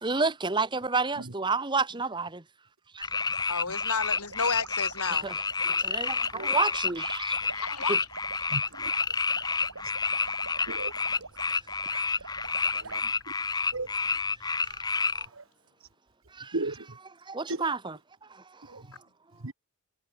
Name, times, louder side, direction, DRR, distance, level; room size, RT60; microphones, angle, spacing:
voice 1, 0.0-2.4 2.9-3.1 5.1-7.4 7.9-8.0 11.9-12.0 14.6-14.7 15.1-15.2 16.3-16.6 17.3-18.0 18.3-18.4, right 4 dB, 20° right, 1.1 m, -30 dB
sound 1, 3.0-15.3, left 4 dB, 20° left, 2.1 m, -29 dB
sound 2, 3.1-13.0, right 4 dB, 90° right, 7.0 m, -45 dB
voice 2, 3.5-5.3 7.5-8.0, left 5 dB, 90° left, 7.0 m, -31 dB
voice 3, 8.5-8.9 10.7-10.9 12.7-13.0 13.7-13.9 14.9-15.0 15.3-15.4 16.5-16.9 17.5-17.6 18.7-18.8 19.4-19.5, right 2 dB, 65° right, 1.5 m, -35 dB
head